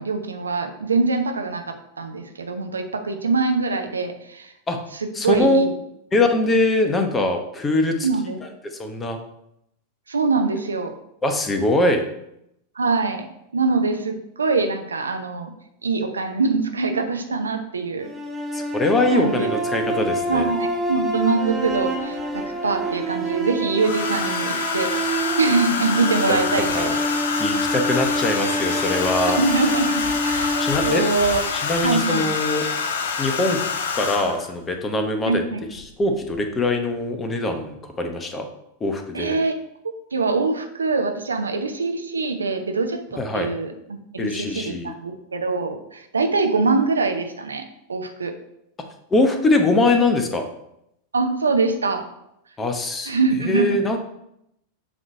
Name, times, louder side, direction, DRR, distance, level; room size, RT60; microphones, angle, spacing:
voice 1, 0.0-4.5 5.0-5.7 8.0-8.4 10.1-10.9 12.8-13.3 13.5-15.5 15.8-18.1 19.1-19.5 20.3-26.9 29.4-29.9 30.2-31.4 31.8-32.3 35.3-35.6 39.1-39.5 40.1-43.0 43.3-48.4 51.1-52.1 53.1-53.8, right 4 dB, 75° right, 6 dB, 0.7 m, -23 dB
voice 2, 5.1-5.7 6.1-8.1 8.6-9.2 11.2-12.0 18.5-20.5 26.3-26.4 26.7-27.0 27.4-29.4 30.6-31.1 31.5-32.7 33.2-33.6 33.9-35.4 35.7-38.5 38.8-39.4 43.1-43.5 44.2-44.9 49.1-50.4 52.6-53.1 53.4-54.0, left 2 dB, 15° left, 5 dB, 0.9 m, -22 dB
sound 1, 18.0-32.2, right 1 dB, 15° right, 1.0 m, -27 dB
Domestic sounds home sounds, 20.2-20.3 21.7-22.4 23.8-34.5 35.8-36.0 36.3-36.7, left 5 dB, 60° left, 0.8 m, -26 dB
7.5 x 3.2 x 5.2 m, 0.80 s
figure-of-eight pair, 90°, 0 cm